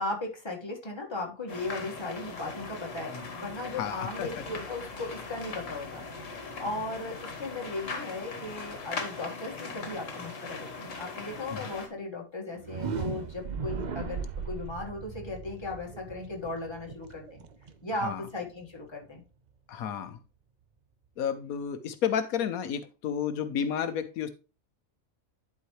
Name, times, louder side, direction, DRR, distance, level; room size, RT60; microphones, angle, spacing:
voice 1, 0.0-17.4 17.8-19.2, left 2 dB, 20° left, 0 dB, 1.6 m, -37 dB
sound 1, 1.5-11.9, left 4 dB, 65° left, 1.7 m, -40 dB
voice 2, 3.7-4.3 11.5-11.6 18.0-18.2 19.7-20.2 21.2-24.3, left 8 dB, 85° left, 10 dB, 1.2 m, -31 dB
sound 2, 12.5-18.4, right 6 dB, 45° right, 0.6 m, -37 dB
11.0 x 4.7 x 3.0 m, 0.31 s
omnidirectional pair, 1.5 m